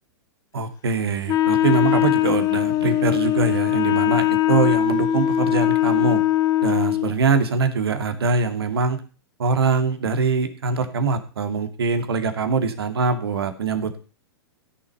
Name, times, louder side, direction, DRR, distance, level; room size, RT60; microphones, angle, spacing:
voice 1, 0.5-6.2 6.6-9.0 9.4-14.0, right 4 dB, 70° right, 7 dB, 2.4 m, -23 dB
Wind instrument woodwind instrument, 1.3-7.1, left 13 dB, 25° left, 1.0 m, -20 dB
15.0 x 7.1 x 5.5 m, 0.36 s
figure-of-eight pair, 105°, 13 cm